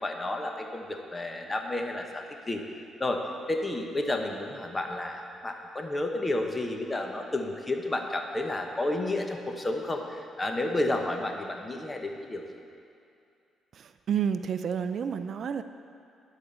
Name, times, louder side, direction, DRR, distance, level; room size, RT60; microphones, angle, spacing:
voice 1, 0.0-2.6 3.0-3.2 3.5-12.4, left 2 dB, 20° left, 3 dB, 1.0 m, -31 dB
voice 2, 13.7-15.6, right 7 dB, 60° right, 10 dB, 0.4 m, -30 dB
11.0 x 4.9 x 6.8 m, 2.5 s
cardioid pair, 90°, 0 cm